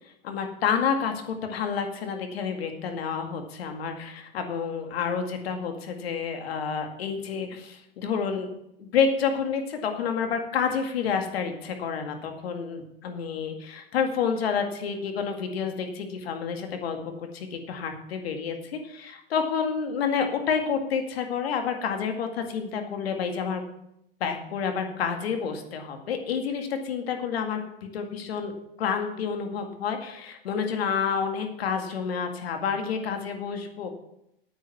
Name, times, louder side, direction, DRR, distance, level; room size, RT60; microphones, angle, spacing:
voice 1, 0.2-8.5 8.8-23.6 24.2-27.6 27.9-28.5 28.8-33.9, left 6 dB, 85° left, 5 dB, 2.2 m, -29 dB
9.1 x 8.9 x 7.2 m, 0.79 s
hypercardioid pair, 115°, 30 cm